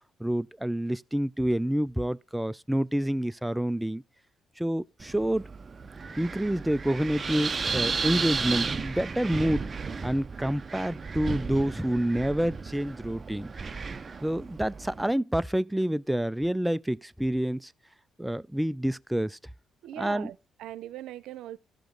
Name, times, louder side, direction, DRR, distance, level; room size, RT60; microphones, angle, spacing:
voice 1, 0.2-4.0 4.6-5.4 6.2-9.6 10.0-13.5 14.2-17.7 18.2-19.4 20.0-20.3, right 1 dB, 5° right, 0.4 m, -28 dB
Wind, 5.0-15.1, right 5 dB, 35° right, 0.7 m, -34 dB
voice 2, 19.8-21.6, right 13 dB, 85° right, 0.7 m, -40 dB
14.5 x 5.0 x 3.8 m
cardioid pair, 90°, 0 cm